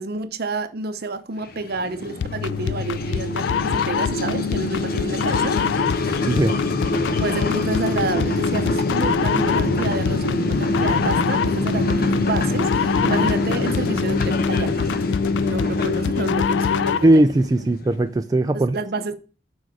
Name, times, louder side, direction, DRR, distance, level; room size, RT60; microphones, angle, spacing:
voice 1, 0.0-5.6 7.2-14.7 15.4-17.1 18.5-19.1, right 3 dB, 55° right, 0.7 m, -29 dB
sound 1, 1.4-18.1, left 1 dB, 55° left, 0.8 m, -26 dB
sound 2, 2.2-17.2, left 7 dB, 75° left, 0.3 m, -25 dB
voice 2, 17.0-18.8, right 1 dB, 20° right, 0.3 m, -18 dB
6.3 x 4.7 x 4.8 m
head